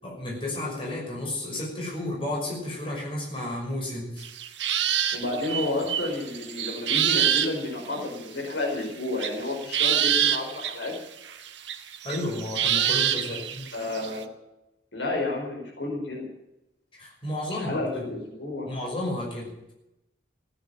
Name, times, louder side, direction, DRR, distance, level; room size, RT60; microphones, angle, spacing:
voice 1, 0.0-4.3 12.0-13.7 16.9-18.1 18.7-19.7, left 1 dB, 30° left, -3 dB, 6.0 m, -32 dB
sound 1, 4.2-7.5 7.9-8.0 9.2-11.0 11.3-14.2, right 9 dB, 75° right, 1.4 m, -26 dB
voice 2, 5.1-10.9 13.1-13.4 13.7-14.3 14.9-16.3 17.5-18.7, left 2 dB, 75° left, 0 dB, 5.1 m, -31 dB
16.0 x 9.7 x 8.8 m, 0.91 s
head